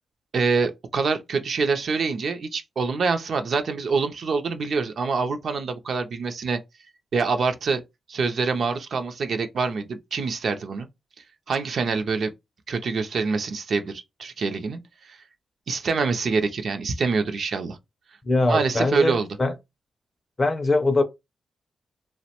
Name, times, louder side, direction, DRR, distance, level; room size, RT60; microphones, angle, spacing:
voice 1, 0.3-6.6 7.1-7.8 8.1-10.9 11.5-12.3 12.7-14.8 15.0-15.2 15.7-17.8 18.5-19.3, right 4 dB, 55° right, 0.4 m, -25 dB
voice 2, 18.2-19.5 20.4-21.0, left 2 dB, 30° left, 0.5 m, -22 dB
2.8 x 2.0 x 2.8 m
wide cardioid pair, 145°, 0 cm